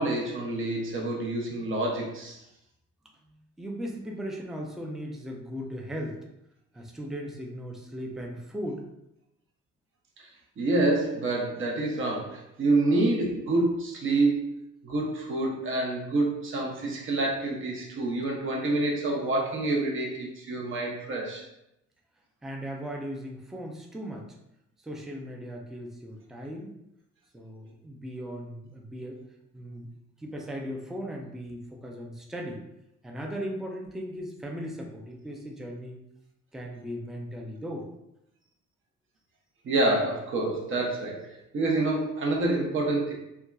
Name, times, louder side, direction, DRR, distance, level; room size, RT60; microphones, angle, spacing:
voice 1, 0.0-2.4 10.6-14.4 14.8-21.4 39.6-41.3 41.5-43.1, right 2 dB, 40° right, -1 dB, 0.7 m, -27 dB
voice 2, 3.6-6.3 6.7-8.9 22.4-24.4 24.8-26.7 27.3-29.2 29.5-29.9 30.2-32.6 33.0-36.0 36.5-37.9, equal, ahead, 1 dB, 0.3 m, -37 dB
2.7 x 2.2 x 2.2 m, 0.82 s
cardioid pair, 90°, 30 cm